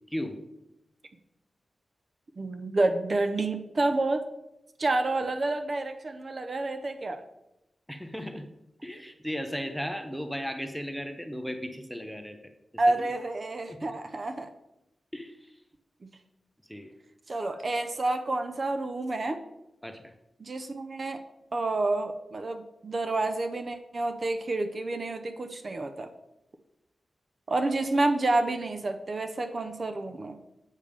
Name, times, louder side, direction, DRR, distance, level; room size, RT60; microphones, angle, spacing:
voice 1, 2.4-4.2 4.8-7.2 12.8-14.5 16.0-16.1 17.3-19.4 20.4-21.2 21.5-26.1 27.5-30.4, right 2 dB, 40° right, 7 dB, 0.6 m, -29 dB
voice 2, 7.9-8.5 8.8-12.4 12.7-13.1 13.7-14.0 15.1-15.6 16.7-16.9 19.8-20.1, equal, ahead, 6 dB, 0.7 m, -36 dB
8.2 x 5.3 x 5.2 m, 0.88 s
wide cardioid pair, 160°, 0 cm